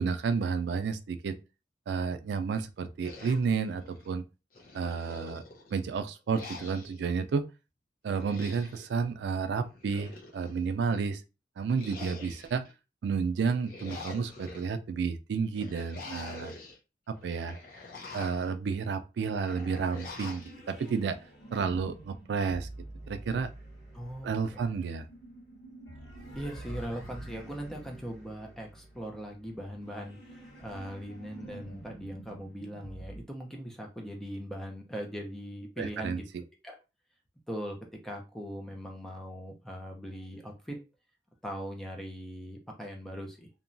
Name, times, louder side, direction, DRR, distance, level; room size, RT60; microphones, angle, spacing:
voice 1, 0.0-1.4 1.9-4.2 4.7-5.4 5.7-7.4 8.0-11.2 11.6-12.6 13.0-16.5 17.1-17.6 18.1-21.2 21.5-22.7 23.1-23.5 24.2-25.0 35.8-36.4, right 5 dB, 75° right, 0.3 m, -31 dB
sound 1, 3.0-4.1 4.5-5.8 6.3-7.1 8.1-8.9 9.6-10.6 11.7-12.7 13.4-14.7 15.5-16.8 17.2-18.5 19.4-20.5, left 3 dB, 50° left, 0.7 m, -46 dB
sound 2, 19.9-33.2, right 1 dB, 75° left, 1.5 m, -48 dB
voice 2, 23.9-24.6 26.3-36.2 36.6-36.8 37.5-37.8 38.0-40.8 41.4-43.5, equal, ahead, 0.5 m, -40 dB
2.9 x 2.2 x 2.5 m
head